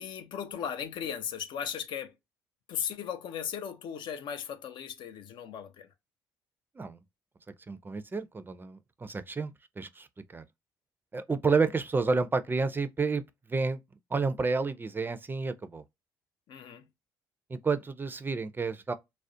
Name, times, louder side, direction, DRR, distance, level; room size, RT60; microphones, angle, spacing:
voice 1, 0.0-2.1 2.7-5.9 16.5-16.9, left 8 dB, 65° left, 0.4 m, -37 dB
voice 2, 7.7-10.1 10.3-10.4 11.1-13.2 13.5-13.8 14.1-15.8 17.5-18.9, right 4 dB, 25° right, 0.4 m, -30 dB
2.4 x 2.0 x 2.5 m
supercardioid pair, 60°, 9 cm